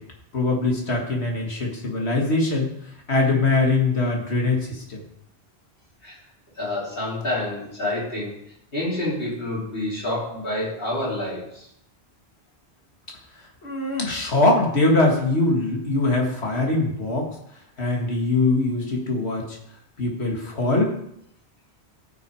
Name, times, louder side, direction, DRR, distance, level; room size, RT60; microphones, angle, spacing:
voice 1, 0.3-2.7 3.1-5.0 13.6-17.3 17.8-19.4 20.0-20.9, left 2 dB, 85° left, 0 dB, 2.4 m, -22 dB
voice 2, 6.6-8.3 8.7-11.6, left 1 dB, 60° left, -7 dB, 4.2 m, -28 dB
14.5 x 6.0 x 4.9 m, 0.74 s
omnidirectional pair, 1.1 m